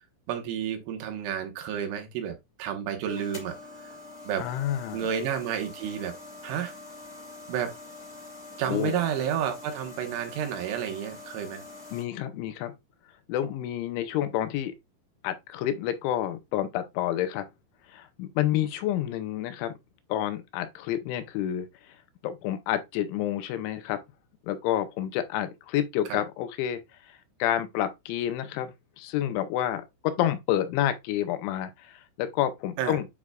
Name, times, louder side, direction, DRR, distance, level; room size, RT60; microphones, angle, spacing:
voice 1, 0.3-4.0 4.3-4.5 4.9-6.2 6.4-6.7 7.5-7.7 8.6-11.6 26.1-26.2 32.8-33.0, right 9 dB, 80° right, 3.7 m, -31 dB
sound 1, 3.1-12.0, left 2 dB, 55° left, 0.7 m, -45 dB
voice 2, 4.4-5.1 8.7-9.0 11.9-12.7 13.3-14.8 15.2-17.5 17.9-19.7 20.1-21.7 22.2-24.0 24.5-26.8 27.4-33.1, left 12 dB, 80° left, 3.1 m, -29 dB
9.4 x 4.8 x 2.3 m
omnidirectional pair, 5.4 m